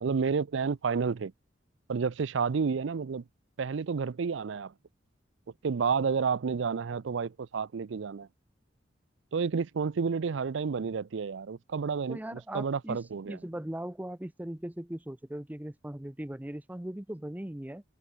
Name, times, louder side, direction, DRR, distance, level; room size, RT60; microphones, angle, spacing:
voice 1, 0.0-1.3 1.9-3.2 3.6-4.7 5.6-8.3 9.3-13.4, right 5 dB, 75° right, 0.5 m, -30 dB
voice 2, 12.1-17.8, right 1 dB, 10° right, 0.6 m, -39 dB
head